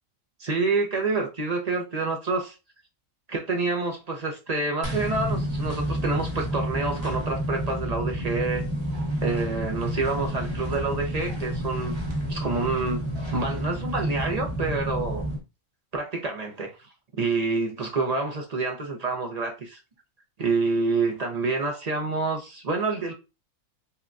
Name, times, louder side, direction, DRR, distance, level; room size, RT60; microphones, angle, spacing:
voice 1, 0.4-2.6 3.3-8.6 9.2-11.9 12.3-13.0 13.3-15.3 15.9-16.8 17.2-19.8 20.4-23.1, right 3 dB, 40° right, 0.6 m, -27 dB
sound 1, 4.8-15.4, equal, 20° right, 1.1 m, -30 dB
5.5 x 2.2 x 2.5 m
omnidirectional pair, 1.4 m